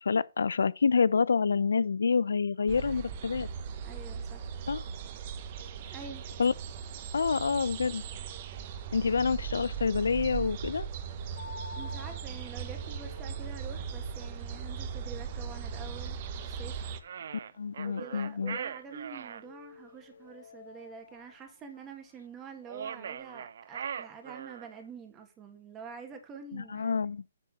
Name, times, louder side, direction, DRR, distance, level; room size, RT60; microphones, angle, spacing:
voice 1, 0.0-3.5 4.7-4.8 6.4-6.5 7.1-8.0 8.9-10.9 17.6-18.6 26.5-27.2, left 5 dB, 80° left, 0.5 m, -27 dB
sound 1, 2.7-17.0, right 7 dB, 40° right, 1.0 m, -38 dB
voice 2, 3.8-4.4 5.9-6.2 11.8-16.2 16.5-16.9 17.8-27.0, right 5 dB, 15° right, 1.8 m, -47 dB
sound 2, 11.3-23.2, left 4 dB, 60° left, 2.4 m, -53 dB
sound 3, 17.0-19.4 22.6-24.8, right 7 dB, 60° right, 0.3 m, -40 dB
9.7 x 4.2 x 6.3 m
hypercardioid pair, 150°, 0 cm